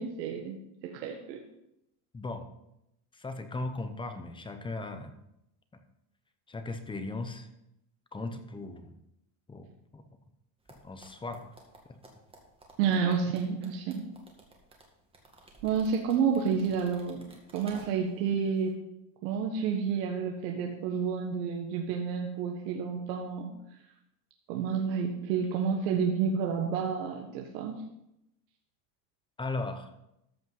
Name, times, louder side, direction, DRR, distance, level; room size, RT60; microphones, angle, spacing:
voice 1, 0.0-1.4 12.8-14.1 15.6-17.3 17.5-18.7 19.2-23.8 24.5-27.8, right 6 dB, 85° right, 2 dB, 1.5 m, -30 dB
voice 2, 2.1-2.5 3.1-5.1 6.5-7.5 8.1-8.9 9.5-10.0 10.8-11.5 11.9-12.0 29.4-29.9, left 2 dB, 10° left, 7 dB, 0.8 m, -37 dB
sound 1, 10.7-18.2 18.5-18.7, right 2 dB, 10° right, 2.0 m, -55 dB
13.5 x 5.5 x 5.5 m, 0.83 s
cardioid pair, 145°, 49 cm